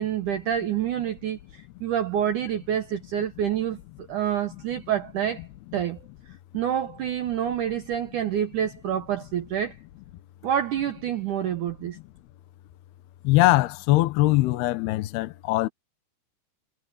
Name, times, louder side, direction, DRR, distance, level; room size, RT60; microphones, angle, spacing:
voice 1, 0.0-3.8 4.1-5.4 5.7-6.0 6.5-9.8 10.4-12.0, right 10 dB, 70° right, 2.1 m, -27 dB
voice 2, 13.2-15.7, left 18 dB, 80° left, 2.9 m, -21 dB
omnidirectional pair, 4.7 m